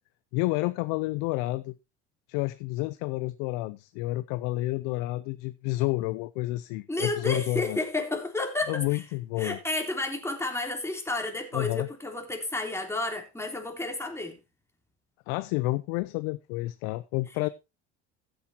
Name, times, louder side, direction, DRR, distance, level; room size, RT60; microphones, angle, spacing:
voice 1, 0.3-1.7 2.3-7.8 8.7-9.6 11.5-11.9 15.3-17.5, left 19 dB, 70° left, 0.6 m, -30 dB
voice 2, 6.9-9.0 9.4-14.4, left 2 dB, 10° left, 3.6 m, -31 dB
15.5 x 8.4 x 2.9 m
hypercardioid pair, 75°, 33 cm